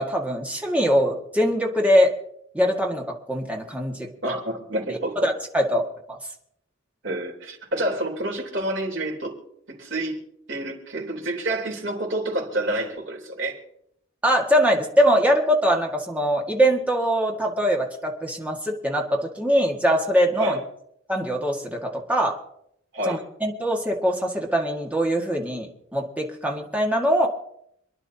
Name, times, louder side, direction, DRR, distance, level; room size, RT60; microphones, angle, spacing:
voice 1, 0.0-2.1 2.5-4.1 4.9-5.0 5.2-5.8 6.1-6.2 14.2-20.6 21.1-22.4 23.1-27.3, equal, 5° right, 0 dB, 1.8 m, -22 dB
voice 2, 4.2-5.3 7.0-9.4 9.7-10.2 10.5-13.6 20.4-20.6 22.9-23.2, right 1 dB, 65° right, 0 dB, 3.6 m, -28 dB
27.5 x 11.0 x 2.8 m, 0.73 s
head